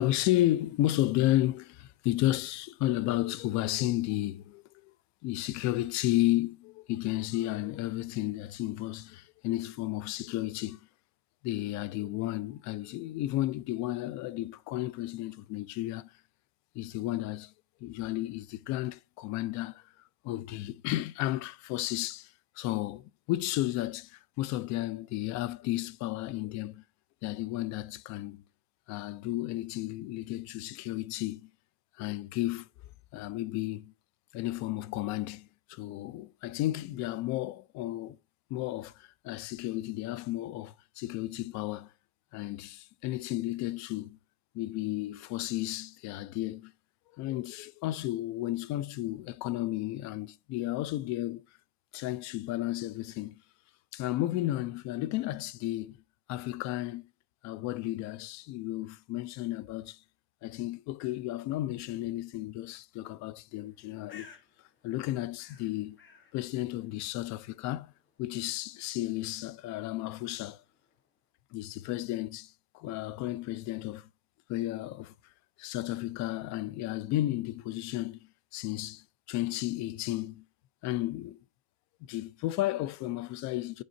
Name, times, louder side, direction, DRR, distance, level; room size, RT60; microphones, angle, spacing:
voice 1, 0.0-4.9 5.2-10.8 11.4-16.1 16.7-17.5 17.8-19.9 20.2-26.8 27.2-28.4 28.9-31.5 32.0-32.7 33.1-33.9 34.3-38.2 38.5-41.9 42.3-44.2 44.5-46.7 47.1-51.4 51.9-53.4 53.9-56.0 56.3-57.1 57.4-60.0 60.4-64.3 64.8-66.0 66.3-67.9 68.2-70.6 71.5-74.1 74.5-75.1 75.6-78.2 78.5-80.4 80.8-81.4 82.1-83.8, left 15 dB, 60° left, 0.6 m, -33 dB
Bird, 63.7-71.2, left 6 dB, 35° left, 1.4 m, -59 dB
9.5 x 4.1 x 2.7 m
cardioid pair, 135°, 33 cm